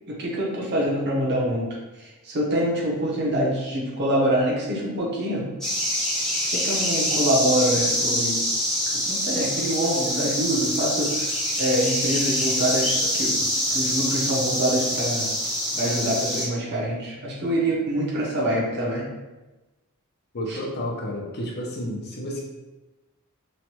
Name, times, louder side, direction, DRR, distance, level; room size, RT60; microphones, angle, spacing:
voice 1, 0.1-1.7 2.0-5.4 6.5-8.4 8.9-15.3 15.7-19.0 20.5-20.6, right 1 dB, 50° right, -3 dB, 0.8 m, -25 dB
sound 1, 5.6-16.5, equal, ahead, 0.6 m, -25 dB
voice 2, 20.3-22.4, left 1 dB, 50° left, -2 dB, 0.6 m, -31 dB
3.1 x 2.2 x 2.9 m, 1.1 s
head